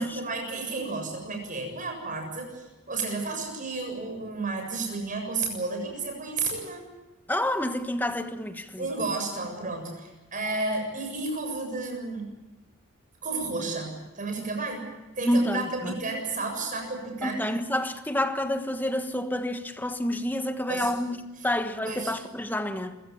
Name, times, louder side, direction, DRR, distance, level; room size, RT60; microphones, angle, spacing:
voice 1, 0.0-6.8 8.8-12.3 13.2-14.9 15.2-17.4 20.7-20.9 21.8-22.1, right 3 dB, 40° right, 7.4 m, -32 dB
voice 2, 7.3-8.9 15.2-15.9 17.2-21.2 21.4-22.9, left 1 dB, 10° left, 1.3 m, -28 dB
26.5 x 16.0 x 9.1 m
head